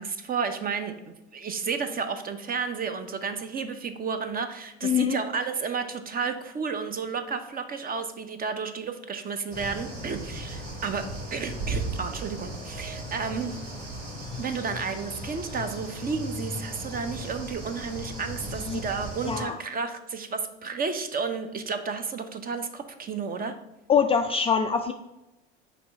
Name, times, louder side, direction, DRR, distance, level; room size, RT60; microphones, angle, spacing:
voice 1, 0.0-13.5 14.4-23.5, right 5 dB, 25° right, 8 dB, 0.7 m, -32 dB
voice 2, 4.8-5.2 18.7-18.8 19.3-19.6 23.9-24.9, left 7 dB, 20° left, 4 dB, 0.3 m, -23 dB
sound 1, 9.5-19.4, right 1 dB, 65° right, 2.2 m, -36 dB
6.0 x 3.1 x 5.7 m, 0.94 s
figure-of-eight pair, 70°, 32 cm